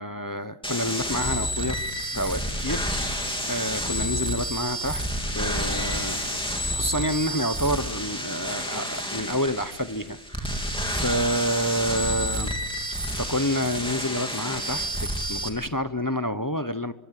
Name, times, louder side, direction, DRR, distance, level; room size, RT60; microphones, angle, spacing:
voice 1, 0.0-5.0 5.3-6.4 6.7-12.5 12.9-16.9, equal, 20° left, 11 dB, 0.5 m, -29 dB
sound 1, 0.6-15.5, equal, 5° left, 3.0 m, -30 dB
24.0 x 24.0 x 7.5 m, 1.2 s
omnidirectional pair, 1.6 m